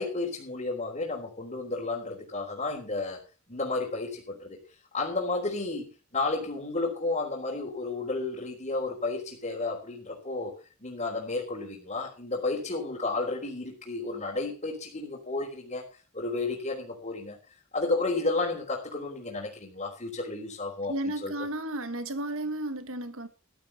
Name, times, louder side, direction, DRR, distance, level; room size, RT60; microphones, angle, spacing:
voice 1, 0.0-3.2 3.5-4.6 4.9-10.5 10.8-15.8 16.1-17.4 17.7-20.9 21.2-21.3, left 3 dB, 35° left, 3.7 m, -32 dB
voice 2, 20.8-23.3, right 1 dB, 65° right, 1.5 m, -33 dB
14.0 x 12.5 x 4.2 m
head